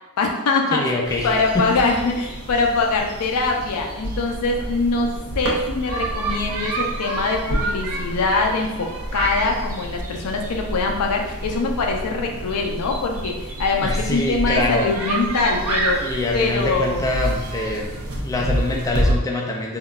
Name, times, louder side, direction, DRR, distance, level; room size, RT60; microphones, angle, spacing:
voice 1, 0.2-0.9 1.2-16.0 16.3-17.1, left 3 dB, 80° left, 2 dB, 0.5 m, -23 dB
voice 2, 0.7-1.7 13.8-14.9 16.0-19.8, left 2 dB, 15° left, 0 dB, 0.4 m, -25 dB
sound 1, 1.0-19.1, right 1 dB, 70° right, 0.6 m, -28 dB
3.6 x 2.2 x 2.4 m, 1.0 s
head